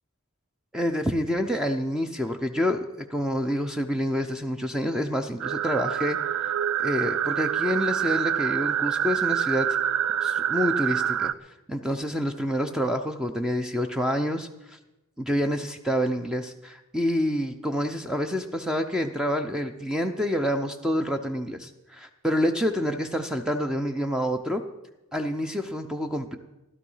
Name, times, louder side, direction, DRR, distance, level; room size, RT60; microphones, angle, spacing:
voice 1, 0.7-6.5 6.8-9.8 10.2-14.8 15.2-24.6 25.1-26.4, equal, 5° right, 5 dB, 0.6 m, -28 dB
sound 1, 5.4-11.3, right 9 dB, 65° right, 0.4 m, -26 dB
16.0 x 12.0 x 5.6 m, 0.98 s
head